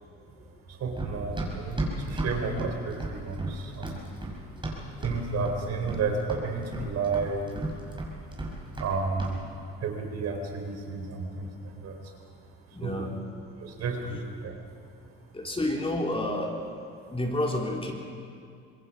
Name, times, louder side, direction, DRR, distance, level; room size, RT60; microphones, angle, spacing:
voice 1, 0.7-4.1 5.0-7.5 8.8-9.4 9.8-12.0 12.8-13.1 13.6-14.6, right 4 dB, 55° right, 3 dB, 4.2 m, -32 dB
Run, 1.0-5.2 5.5-6.0 6.3-8.9 9.2-9.4, right 2 dB, 15° right, 6.0 m, -34 dB
voice 2, 12.7-13.1 15.3-16.6 17.1-17.9, left 1 dB, 15° left, 0 dB, 3.7 m, -29 dB
25.0 x 21.0 x 5.7 m, 2.4 s
supercardioid pair, 80°, 32 cm